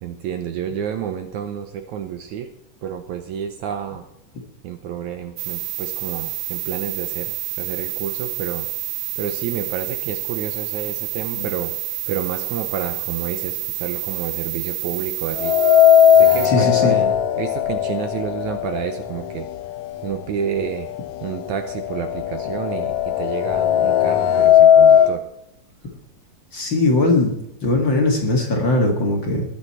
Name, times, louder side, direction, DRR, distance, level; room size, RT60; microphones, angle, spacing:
voice 1, 0.0-2.5 2.8-4.0 4.6-8.7 9.2-15.8 16.1-19.5 20.0-20.9 21.2-25.2, right 8 dB, 75° right, 7 dB, 1.9 m, -30 dB
sound 1, 5.4-16.5, right 14 dB, 90° right, 2.5 m, -28 dB
sound 2, 15.4-19.4 19.8-19.9 20.9-21.0 21.3-25.2, left 9 dB, 75° left, 1.7 m, -16 dB
voice 2, 16.4-16.9 26.5-27.3 27.6-29.4, left 2 dB, 40° left, 1 dB, 2.2 m, -19 dB
21.0 x 8.1 x 4.3 m, 0.76 s
omnidirectional pair, 4.0 m